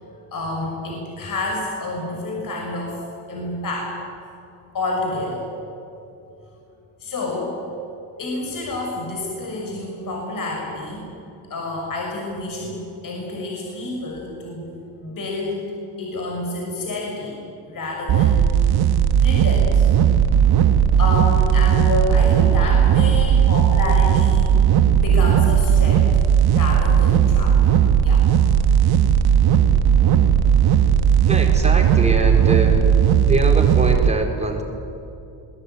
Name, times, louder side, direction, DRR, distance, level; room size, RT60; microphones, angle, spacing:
voice 1, 0.3-3.0 3.3-3.9 4.7-5.5 7.0-7.5 8.2-11.1 11.5-15.6 16.0-17.4 17.7-18.7 19.2-19.9 21.0-26.1 26.5-27.6 28.0-28.3 29.5-29.6, left 2 dB, 50° left, -1 dB, 6.4 m, -28 dB
sound 1, 18.1-34.1, right 9 dB, 60° right, 1.4 m, -16 dB
voice 2, 31.3-34.6, right 2 dB, 15° right, 1 dB, 4.8 m, -23 dB
23.5 x 21.0 x 9.6 m, 2.8 s
cardioid pair, 100°, 43 cm